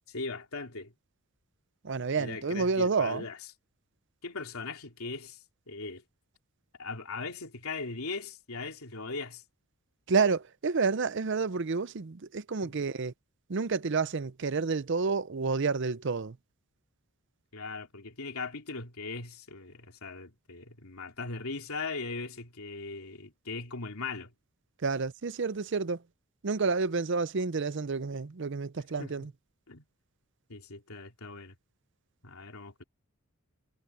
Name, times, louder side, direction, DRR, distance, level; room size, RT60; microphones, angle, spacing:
voice 1, 0.1-0.9 2.1-3.4 4.2-5.4 5.7-6.0 6.8-9.4 12.6-12.7 17.5-24.3 29.0-29.3 29.7-29.8 30.5-31.6 32.2-32.8, left 3 dB, 90° left, 3.0 m, -39 dB
voice 2, 1.8-3.2 10.1-13.1 13.5-16.4 24.8-26.0 26.4-29.3, right 4 dB, 55° right, 0.6 m, -29 dB
head